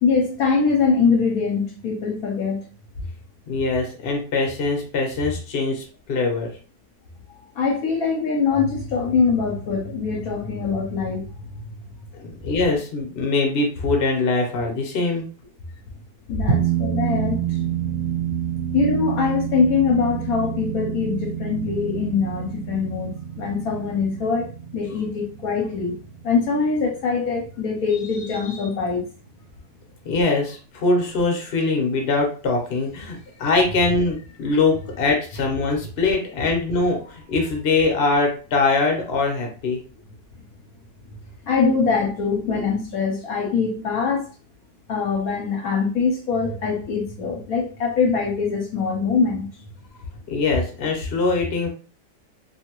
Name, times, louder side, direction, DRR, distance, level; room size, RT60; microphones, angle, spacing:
voice 1, 0.0-2.6 7.5-11.6 16.3-17.6 18.7-26.0 26.2-29.0 41.5-44.2 44.9-49.5, left 5 dB, 70° left, 0 dB, 1.1 m, -23 dB
voice 2, 3.5-6.5 12.2-15.2 30.0-39.8 50.3-51.7, left 3 dB, 50° left, 1 dB, 0.9 m, -22 dB
sound 1, 16.5-27.2, right 9 dB, 60° right, 0.7 m, -28 dB
2.7 x 2.7 x 2.9 m, 0.38 s
omnidirectional pair, 1.7 m